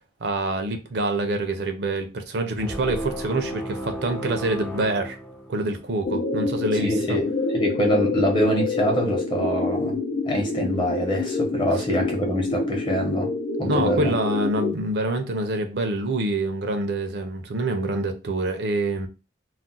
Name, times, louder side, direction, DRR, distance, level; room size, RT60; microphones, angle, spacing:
voice 1, 0.2-5.2 5.5-7.2 13.7-19.1, right 2 dB, 55° right, 0.5 m, -26 dB
sound 1, 2.6-5.9, equal, 10° left, 0.4 m, -33 dB
sound 2, 6.0-14.7, left 3 dB, 70° left, 0.6 m, -27 dB
voice 2, 6.8-13.3 13.6-14.1, equal, 25° left, 0.8 m, -25 dB
2.3 x 2.1 x 3.8 m
head